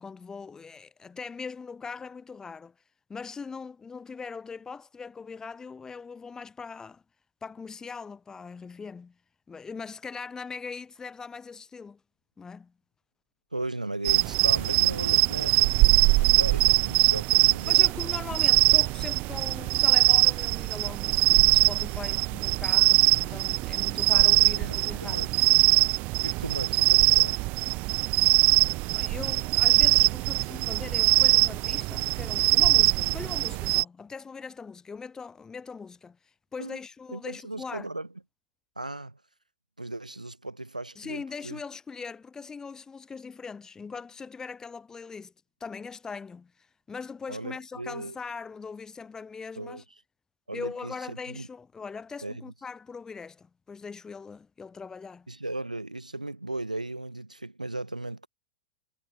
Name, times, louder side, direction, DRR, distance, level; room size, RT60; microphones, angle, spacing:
voice 1, 0.0-2.7 3.1-7.0 7.4-9.2 9.5-12.0 12.4-12.7 17.7-25.4 26.4-26.5 28.8-37.9 41.0-45.3 45.6-49.8 50.5-55.3, left 5 dB, 15° left, 4.0 m, -41 dB
voice 2, 13.5-17.9 24.1-25.3 26.2-27.4 36.6-36.8 37.1-38.1 38.8-39.2 39.8-41.6 47.3-48.2 49.6-49.8 50.5-51.5 52.2-52.4 55.3-58.3, right 2 dB, 90° right, 4.3 m, -36 dB
sound 1, 14.0-33.8, right 24 dB, 40° right, 0.3 m, -22 dB
figure-of-eight pair, 95°, 4 cm